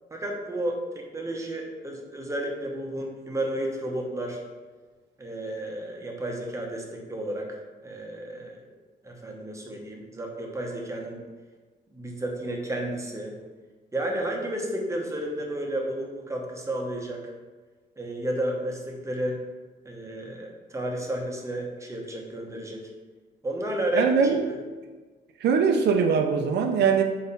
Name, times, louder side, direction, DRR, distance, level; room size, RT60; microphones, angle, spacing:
voice 1, 0.1-4.4 5.2-8.6 9.0-11.2 11.9-13.4 13.9-17.2 18.0-19.4 19.8-22.9 23.4-24.1, right 1 dB, 15° right, 0 dB, 0.9 m, -32 dB
voice 2, 23.9-24.5 25.4-27.0, right 6 dB, 75° right, 4 dB, 0.6 m, -21 dB
4.2 x 4.2 x 5.5 m, 1.3 s
cardioid pair, 150°, 18 cm